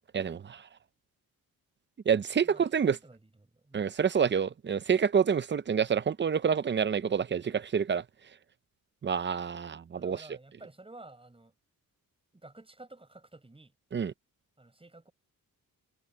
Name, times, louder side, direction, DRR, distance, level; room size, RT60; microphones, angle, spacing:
voice 1, 0.1-0.6 2.1-3.0 3.7-8.0 9.0-10.2 13.9-14.1, right 7 dB, 30° right, 0.6 m, -27 dB
voice 2, 2.4-3.9 10.0-11.5 12.3-13.7 14.6-15.1, right 2 dB, 15° right, 6.4 m, -52 dB
cardioid pair, 120°, 36 cm